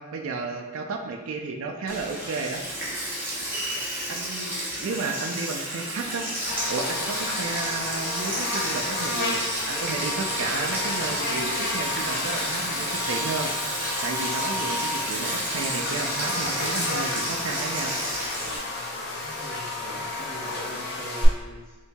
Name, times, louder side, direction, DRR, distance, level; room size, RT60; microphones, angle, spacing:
voice 1, 0.0-2.6 4.1-6.4 6.7-13.5 14.0-17.9, right 4 dB, 75° right, 3 dB, 0.4 m, -33 dB
Sink (filling or washing), 1.9-18.6, equal, 10° right, 0.7 m, -31 dB
Buzz, 6.4-21.2, left 2 dB, 50° left, 0.6 m, -31 dB
voice 2, 15.0-15.4 19.2-21.8, equal, 20° left, -6 dB, 0.8 m, -42 dB
4.4 x 2.7 x 2.2 m, 1.3 s
head